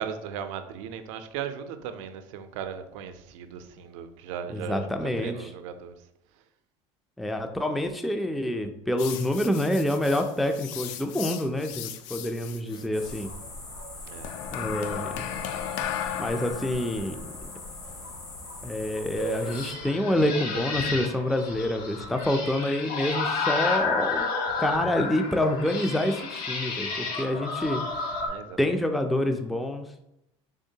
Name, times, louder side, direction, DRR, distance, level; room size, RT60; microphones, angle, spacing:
voice 1, 0.0-4.9 5.2-5.9 12.7-13.1 14.1-14.3 27.2-27.6 28.3-28.6, right 8 dB, 75° right, 9 dB, 0.5 m, -37 dB
voice 2, 4.5-5.5 7.2-13.3 14.5-15.3 16.2-17.2 18.6-24.2 24.6-27.8 28.6-29.9, left 1 dB, ahead, 6 dB, 0.3 m, -27 dB
sound 1, 9.0-13.3 14.2-19.6, left 10 dB, 70° left, 0.4 m, -37 dB
sound 2, 12.9-19.7, left 2 dB, 85° left, 1.3 m, -41 dB
sound 3, 19.1-28.3, left 4 dB, 55° left, 1.0 m, -31 dB
3.6 x 3.1 x 2.7 m, 0.83 s
supercardioid pair, 100°, 17 cm